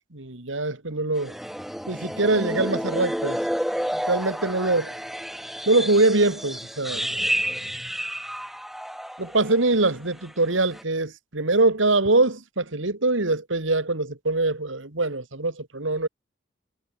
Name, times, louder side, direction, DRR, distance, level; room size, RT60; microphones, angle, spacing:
voice 1, 0.1-1.3 1.9-3.4 3.9-5.0 5.7-7.0 9.2-16.1, right 2 dB, 85° right, 2.6 m, -23 dB
sound 1, 1.1-9.7 10.0-10.3 10.7-10.8, equal, ahead, 3.6 m, -30 dB
head